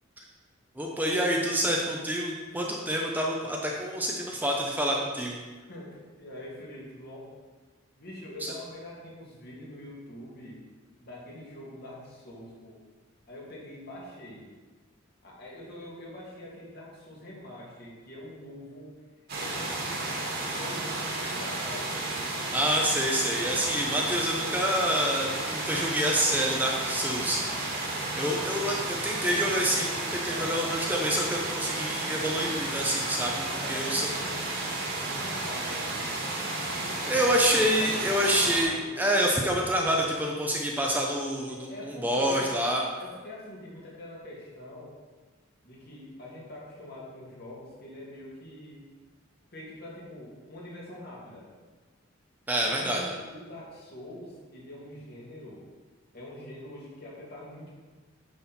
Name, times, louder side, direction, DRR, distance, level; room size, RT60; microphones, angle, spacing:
voice 1, 0.8-5.4 22.5-27.8 28.1-33.4 33.7-34.1 37.0-42.8 52.5-53.0, equal, 10° right, -1 dB, 0.7 m, -27 dB
voice 2, 5.6-7.3 8.0-10.6 11.0-12.7 13.3-14.5 15.2-18.9 19.3-22.0 30.3-30.6 33.4-36.1 36.6-37.2 37.6-39.0 41.5-42.6 43.0-45.0 45.6-48.9 49.5-51.5 52.5-55.6 56.1-57.7, left 1 dB, 50° left, -5 dB, 2.5 m, -44 dB
sound 1, 19.3-38.6, right 2 dB, 55° right, 2.0 m, -32 dB
9.4 x 6.3 x 4.3 m, 1.3 s
head